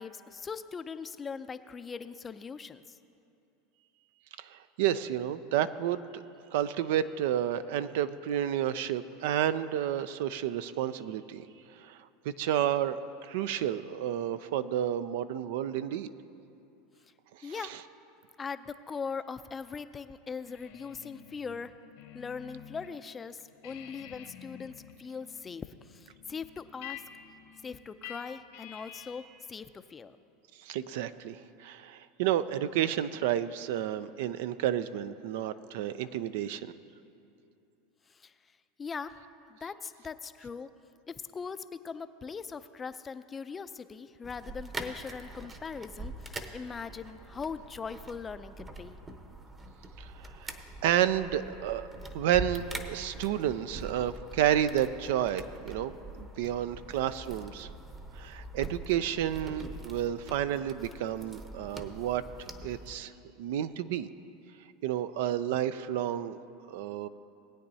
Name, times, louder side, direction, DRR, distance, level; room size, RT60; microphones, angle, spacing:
voice 1, 0.0-3.0 17.4-17.8 18.4-21.7 22.1-24.7 25.0-27.0 27.6-30.2 38.1-39.2 39.5-40.7 41.1-49.0, left 5 dB, 25° left, 12 dB, 0.4 m, -40 dB
voice 2, 4.4-6.2 6.5-11.5 11.8-12.0 12.4-16.1 30.6-36.7 50.0-50.1 50.4-57.7 58.2-63.1 63.4-64.1 64.8-66.4 66.7-67.1, right 11 dB, 70° right, 13 dB, 0.4 m, -31 dB
sound 1, 20.4-22.9 23.2-29.4, left 9 dB, 70° left, 1.1 m, -49 dB
sound 2, 44.2-63.0, right 2 dB, 20° right, 0.9 m, -44 dB
19.5 x 8.8 x 2.7 m, 2.7 s
hypercardioid pair, 100°, 0 cm